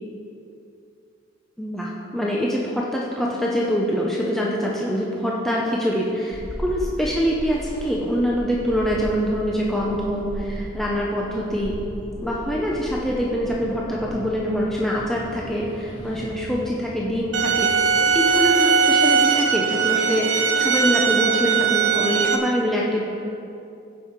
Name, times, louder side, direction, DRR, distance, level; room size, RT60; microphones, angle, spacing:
voice 1, 1.6-11.8 12.2-23.0, equal, ahead, -4 dB, 0.8 m, -24 dB
sound 1, 6.3-18.5, equal, 35° left, 2.5 m, -36 dB
sound 2, 17.3-22.4, right 5 dB, 75° right, 0.8 m, -20 dB
16.0 x 5.5 x 4.6 m, 2.6 s
head